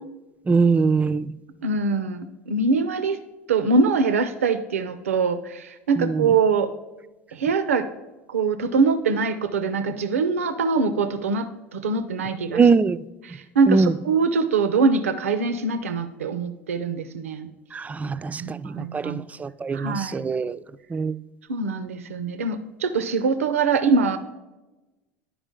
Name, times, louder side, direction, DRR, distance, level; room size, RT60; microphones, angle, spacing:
voice 1, 0.5-1.3 6.0-6.3 12.5-13.0 13.7-13.9 17.7-20.6 20.9-21.1, right 4 dB, 20° right, 0.3 m, -22 dB
voice 2, 1.6-3.2 3.5-6.7 7.3-7.9 8.3-12.6 13.2-17.5 18.4-19.2 19.7-20.3 21.5-24.2, right 4 dB, 85° right, 0.5 m, -23 dB
11.0 x 4.9 x 3.7 m
hypercardioid pair, 75°, 7 cm